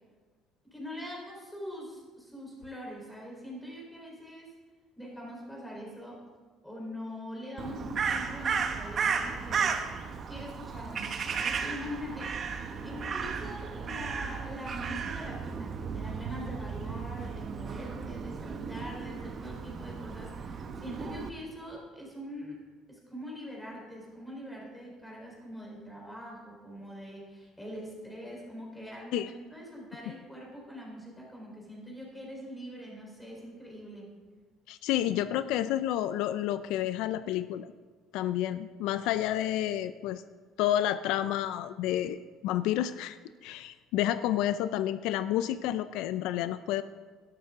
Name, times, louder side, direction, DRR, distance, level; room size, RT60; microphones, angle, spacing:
voice 1, 0.7-4.5 5.0-6.2 6.6-9.8 10.3-22.6 22.9-34.1, equal, 5° left, -2 dB, 3.9 m, -43 dB
Crow, 7.6-21.3, right 6 dB, 35° right, 0.9 m, -34 dB
voice 2, 34.7-37.7 38.1-40.2 40.6-46.8, left 12 dB, 80° left, 13 dB, 0.4 m, -30 dB
12.5 x 12.0 x 3.7 m, 1.4 s
cardioid pair, 135°, 0 cm